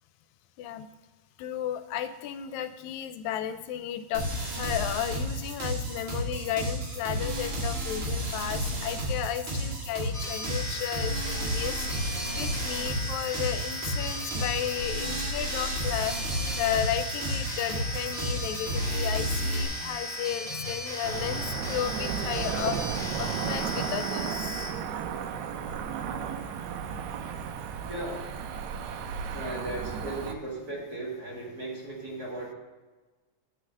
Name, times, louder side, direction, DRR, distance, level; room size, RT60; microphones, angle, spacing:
voice 1, 1.4-12.1 12.3-24.3, left 10 dB, 85° left, 11 dB, 1.9 m, -33 dB
sound 1, 4.1-19.6, equal, 70° right, 3.6 m, -32 dB
sound 2, 10.1-24.7, left 1 dB, ahead, 1.7 m, -36 dB
Cricket / Motor vehicle (road), 21.0-30.3, right 7 dB, 90° right, 2.0 m, -34 dB
voice 2, 27.9-28.3 29.3-32.5, right 1 dB, 35° right, -3 dB, 2.0 m, -36 dB
9.4 x 6.7 x 6.4 m, 1.3 s
omnidirectional pair, 3.3 m